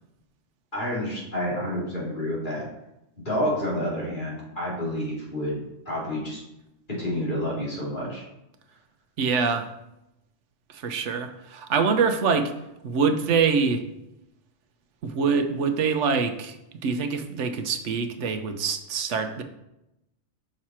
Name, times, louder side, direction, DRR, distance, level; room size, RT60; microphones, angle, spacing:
voice 1, 0.7-2.6 3.2-5.6 5.8-6.4 6.9-8.2, equal, 45° left, -6 dB, 2.9 m, -29 dB
voice 2, 9.2-9.7 10.7-12.5 12.8-13.8 15.0-16.6 16.8-19.4, right 5 dB, 85° right, 8 dB, 1.1 m, -24 dB
6.5 x 6.1 x 4.3 m, 0.89 s
omnidirectional pair, 1.2 m